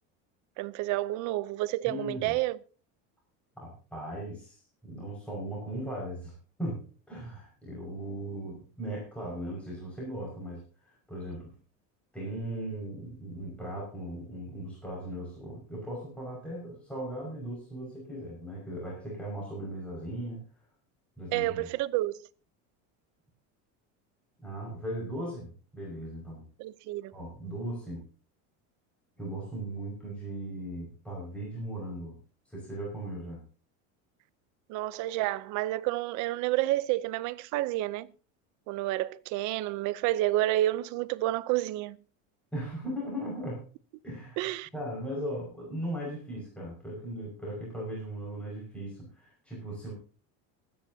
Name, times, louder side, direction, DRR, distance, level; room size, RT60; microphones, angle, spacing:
voice 1, 0.6-2.6 21.3-22.2 26.6-27.1 34.7-38.1 38.7-42.0 44.4-44.7, right 16 dB, 55° right, 0.7 m, -29 dB
voice 2, 1.8-2.4 3.6-6.3 6.6-11.5 12.1-20.4 21.2-21.7 24.4-26.4 27.1-28.1 29.2-32.2 32.5-33.4 42.5-43.6 44.0-49.9, right 1 dB, 5° left, 5.6 m, -38 dB
25.0 x 9.6 x 2.8 m
cardioid pair, 150°, 36 cm